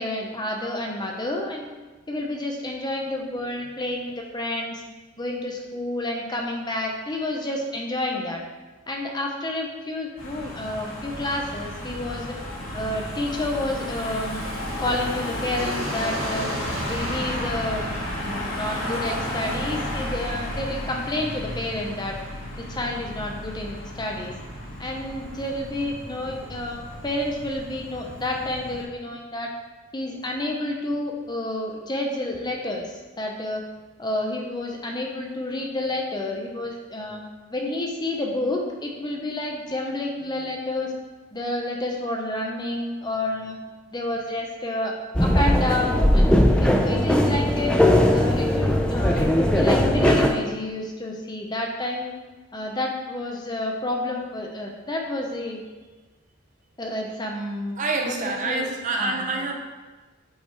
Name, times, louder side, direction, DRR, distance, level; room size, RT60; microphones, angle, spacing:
voice 1, 0.0-1.7 2.1-4.8 5.2-8.4 8.9-12.4 12.7-14.4 14.8-16.5 16.9-17.9 18.2-22.2 22.6-24.3 24.8-29.5 29.9-33.6 34.0-37.2 37.5-40.9 41.3-43.6 43.9-44.9 45.2-47.8 48.1-52.1 52.5-55.6 56.8-57.8 58.0-58.7 58.9-59.5, left 1 dB, 20° left, 1 dB, 0.8 m, -29 dB
Car passing by / Engine, 10.2-28.8, left 1 dB, 70° left, 2.2 m, -33 dB
sound 1, 15.6-19.5, right 1 dB, 75° right, 1.6 m, -36 dB
sound 2, 45.1-50.3, left 1 dB, 5° left, 0.4 m, -19 dB
voice 2, 57.8-59.5, right 3 dB, 35° right, 1 dB, 0.7 m, -26 dB
8.1 x 4.9 x 3.4 m, 1.3 s
head